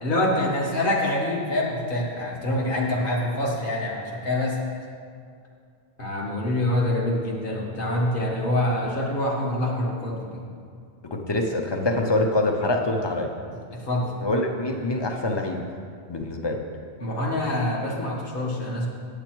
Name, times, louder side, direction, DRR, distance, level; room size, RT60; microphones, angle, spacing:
voice 1, 0.0-4.6 6.0-10.5 13.7-14.1 17.0-18.9, left 1 dB, 50° left, -3 dB, 1.5 m, -25 dB
voice 2, 11.1-13.3 14.2-15.6 16.1-16.6, left 2 dB, 30° left, 3 dB, 0.6 m, -25 dB
8.7 x 6.8 x 4.6 m, 2.3 s
omnidirectional pair, 1.1 m